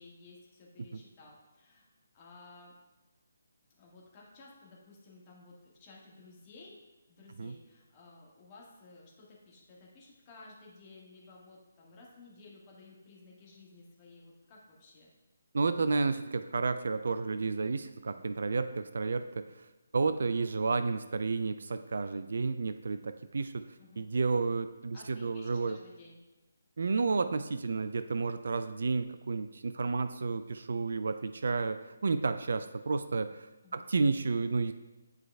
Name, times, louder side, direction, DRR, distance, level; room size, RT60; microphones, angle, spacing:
voice 1, 0.0-1.9 2.1-2.7 3.7-6.7 7.1-15.1 23.8-24.0 24.9-26.2 33.6-33.8, left 3 dB, 25° left, -3 dB, 1.5 m, -55 dB
voice 2, 15.5-19.2 19.9-23.6 24.0-25.8 26.8-33.5 33.7-34.7, right 4 dB, 55° right, 10 dB, 0.3 m, -31 dB
9.7 x 4.6 x 2.2 m, 1.0 s
figure-of-eight pair, 145°, 0 cm